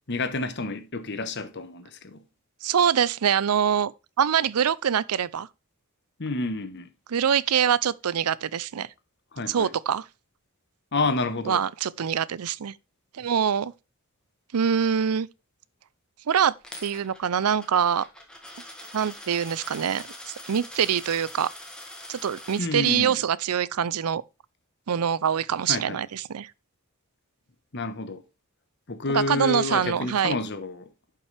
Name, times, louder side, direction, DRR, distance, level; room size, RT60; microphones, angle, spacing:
voice 1, 0.1-2.2 6.2-6.9 9.3-9.7 10.9-11.6 22.6-23.2 25.7-26.0 27.7-28.2 28.9-30.9, left 3 dB, 50° left, 1.1 m, -29 dB
voice 2, 2.6-3.9 4.2-5.5 7.1-8.9 9.5-10.1 11.5-12.7 13.1-13.7 14.5-15.3 16.3-16.5 16.8-18.1 18.9-21.5 22.1-24.2 24.9-26.5 29.1-30.3, right 8 dB, 90° right, 0.5 m, -24 dB
Coin (dropping), 16.6-22.6, left 1 dB, 5° left, 1.7 m, -43 dB
11.0 x 5.8 x 3.3 m
head